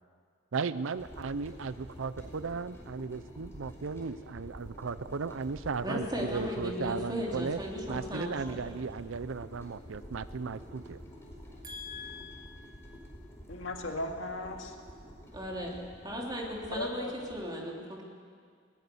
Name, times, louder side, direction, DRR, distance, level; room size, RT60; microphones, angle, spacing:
voice 1, 0.5-7.6 7.9-11.0, right 5 dB, 70° right, 14 dB, 0.6 m, -36 dB
sound 1, 0.9-17.5, equal, 15° left, 4.6 m, -49 dB
voice 2, 5.8-8.7 11.6-12.9 15.3-18.0, equal, 20° right, -2 dB, 3.4 m, -37 dB
voice 3, 13.5-14.8 16.8-17.1, left 2 dB, 65° left, 2 dB, 2.1 m, -36 dB
20.0 x 18.5 x 7.1 m, 2.1 s
head